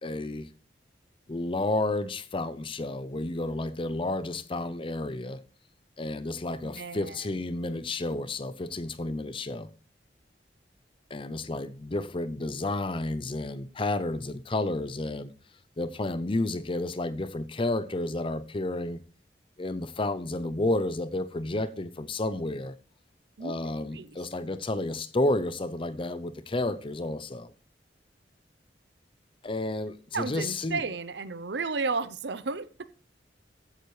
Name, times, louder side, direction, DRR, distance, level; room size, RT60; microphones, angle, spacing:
voice 1, 0.0-0.5 1.3-5.4 6.0-9.7 11.1-15.3 15.8-19.0 19.6-22.7 23.4-27.5 29.4-30.8, left 2 dB, 30° left, 0.7 m, -31 dB
voice 2, 6.6-7.2 23.4-23.6 23.9-24.2 30.1-32.9, right 4 dB, 70° right, 0.7 m, -33 dB
15.0 x 9.0 x 3.2 m
head